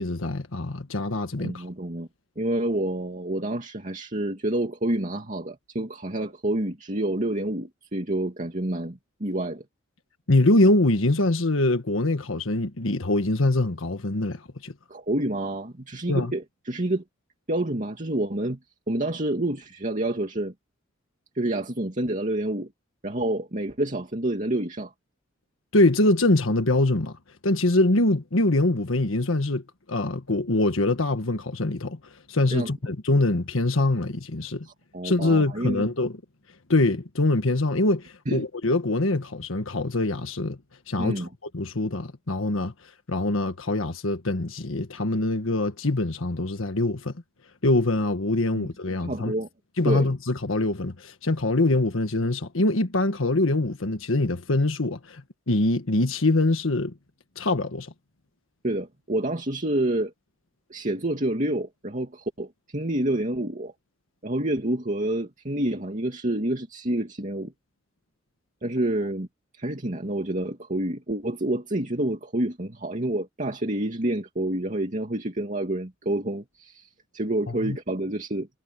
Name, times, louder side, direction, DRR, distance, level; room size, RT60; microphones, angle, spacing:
voice 1, 0.0-1.6 10.3-14.7 16.1-16.3 25.7-27.2 27.4-32.0 32.3-34.7 35.0-36.1 36.7-40.6 40.9-42.7 43.1-47.1 47.6-49.3 49.8-56.9 57.4-57.9 77.5-77.8, left 2 dB, 85° left, 1.5 m, -24 dB
voice 2, 1.4-2.1 2.4-9.6 14.9-17.0 17.5-18.6 18.9-20.5 21.3-22.7 23.0-24.9 32.5-32.7 34.6-35.9 38.3-38.5 41.0-41.3 48.5-48.7 49.0-49.5 49.8-50.1 58.6-60.1 60.7-63.7 64.2-67.5 68.6-69.3 69.6-78.5, right 1 dB, 40° right, 2.4 m, -28 dB
head